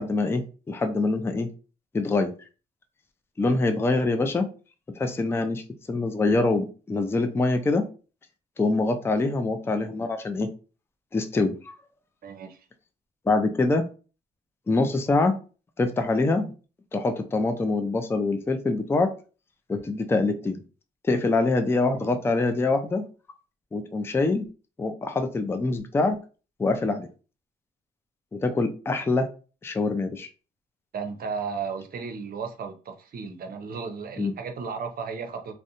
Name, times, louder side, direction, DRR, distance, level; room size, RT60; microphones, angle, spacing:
voice 1, 0.0-1.5 1.9-2.3 3.4-4.5 4.9-5.6 5.9-7.9 8.6-10.5 11.1-11.8 13.3-13.8 14.7-15.4 15.8-16.5 16.9-19.1 19.7-20.6 21.0-23.1 23.7-24.5 24.8-26.2 26.6-27.1 28.3-29.3 29.6-30.3 34.2-34.3, left 3 dB, 10° left, 0.4 m, -24 dB
voice 2, 12.2-12.7 30.9-35.5, right 5 dB, 50° right, 0.6 m, -34 dB
2.5 x 2.1 x 2.8 m
cardioid pair, 90°, 20 cm